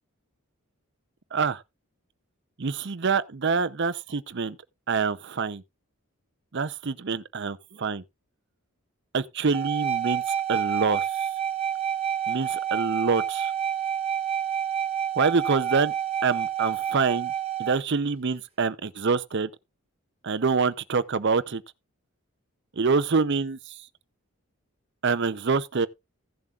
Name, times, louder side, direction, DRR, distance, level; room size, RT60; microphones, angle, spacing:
voice 1, 1.3-1.6 2.6-4.6 4.9-5.6 6.5-8.0 9.1-10.2 10.5-11.0 12.3-13.5 15.2-15.9 16.2-17.3 17.6-19.5 20.2-21.6 22.8-23.8 25.0-25.9, right 4 dB, 50° right, 0.6 m, -26 dB
sound 1, 9.5-17.8, right 9 dB, 25° right, 1.1 m, -28 dB
16.0 x 7.2 x 2.4 m
head